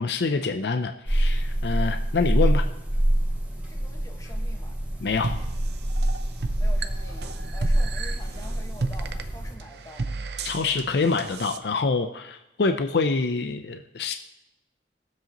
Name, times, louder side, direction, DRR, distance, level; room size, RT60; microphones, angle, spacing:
voice 1, 0.0-2.6 5.0-5.4 10.4-14.1, left 4 dB, 65° left, 6 dB, 0.5 m, -26 dB
sound 1, 1.1-9.5, right 1 dB, 10° right, 2.1 m, -26 dB
voice 2, 3.7-4.8 6.6-10.1, equal, 20° left, 2 dB, 1.4 m, -46 dB
sound 2, 5.2-11.6, right 3 dB, 65° right, 0.7 m, -34 dB
21.0 x 7.7 x 3.0 m, 0.90 s
head